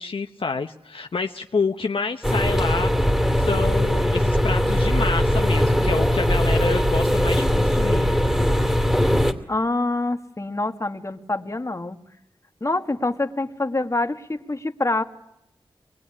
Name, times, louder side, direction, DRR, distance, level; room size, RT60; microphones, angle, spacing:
voice 1, 0.0-2.9 3.4-8.1, left 4 dB, 65° left, 5 dB, 1.0 m, -28 dB
sound 1, 2.2-9.3, equal, 5° right, 2.8 m, -20 dB
voice 2, 9.5-12.0 12.6-15.0, left 2 dB, 30° left, 6 dB, 1.9 m, -26 dB
24.0 x 20.5 x 9.9 m, 0.80 s
wide cardioid pair, 60°, 10 cm